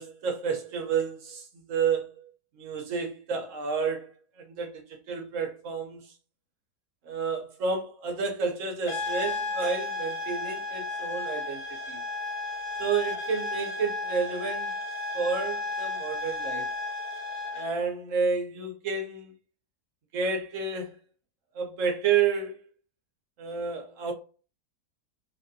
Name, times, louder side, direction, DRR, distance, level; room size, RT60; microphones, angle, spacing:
voice 1, 0.0-2.2 2.6-4.1 4.4-6.0 7.1-11.6 11.9-12.0 12.8-14.7 15.1-16.7 17.5-19.3 20.1-21.0 21.5-22.6 23.4-24.1, right 5 dB, 65° right, 0.9 m, -30 dB
sound 1, 8.9-17.8, left 3 dB, 90° left, 1.3 m, -33 dB
3.2 x 2.5 x 2.5 m
omnidirectional pair, 1.7 m